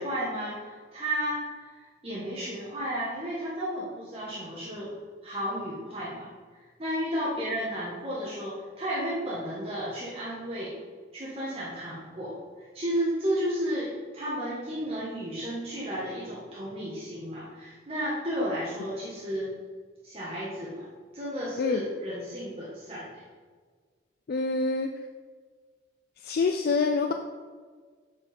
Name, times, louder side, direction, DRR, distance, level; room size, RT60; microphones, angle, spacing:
voice 1, 0.0-4.9 5.2-10.7 11.1-19.5 20.0-20.9 21.1-23.1, equal, 30° right, -7 dB, 1.3 m, -33 dB
voice 2, 24.3-24.9 26.2-27.1, left 4 dB, 55° left, 5 dB, 0.3 m, -26 dB
7.4 x 4.9 x 4.3 m, 1.5 s
head